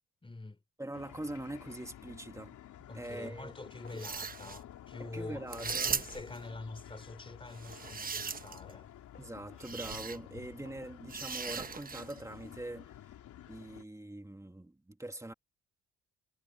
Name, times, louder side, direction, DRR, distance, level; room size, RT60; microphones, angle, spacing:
voice 1, 0.2-0.6 2.9-8.9, left 2 dB, 15° left, 3.5 m, -46 dB
voice 2, 0.8-2.6 2.9-3.5 5.0-6.0 9.2-13.0 13.5-15.3, right 1 dB, 10° right, 2.3 m, -43 dB
sound 1, 0.9-13.8, left 11 dB, 75° left, 3.7 m, -52 dB
sound 2, 3.8-4.2 4.5-4.6 5.7-6.1 7.3-7.4 9.1-9.5 10.7-10.8 12.1-12.2, left 6 dB, 40° left, 2.3 m, -56 dB
sound 3, 3.9-4.6 5.5-6.4 7.5-8.7 9.6-10.2 11.1-12.2, right 5 dB, 30° right, 1.1 m, -38 dB
cardioid pair, 90°, 30 cm